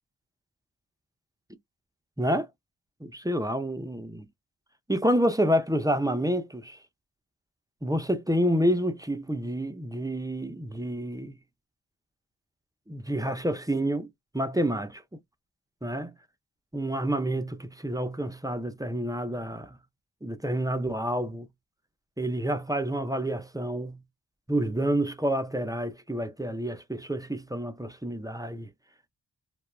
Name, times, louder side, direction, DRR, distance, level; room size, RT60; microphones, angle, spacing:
voice 1, 2.2-2.5 3.0-4.3 4.9-6.8 7.8-11.4 12.9-14.1 14.3-15.0 15.8-16.1 16.7-19.8 20.2-21.5 22.2-24.0 24.5-28.7, equal, 10° right, 0.4 m, -28 dB
2.2 x 2.1 x 3.0 m
wide cardioid pair, 55°, 41 cm